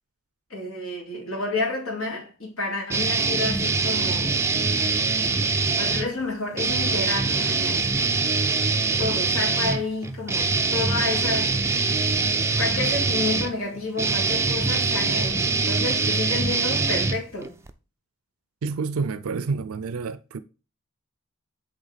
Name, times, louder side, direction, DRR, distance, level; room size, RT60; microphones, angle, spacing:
voice 1, 0.5-4.4 5.8-7.9 9.0-12.1 12.6-17.5, left 3 dB, 75° left, 2.4 m, -30 dB
sound 1, 2.9-6.1 6.5-17.7, right 4 dB, 10° right, 0.4 m, -23 dB
voice 2, 18.6-20.4, right 4 dB, 80° right, 0.5 m, -28 dB
8.1 x 3.5 x 3.9 m
head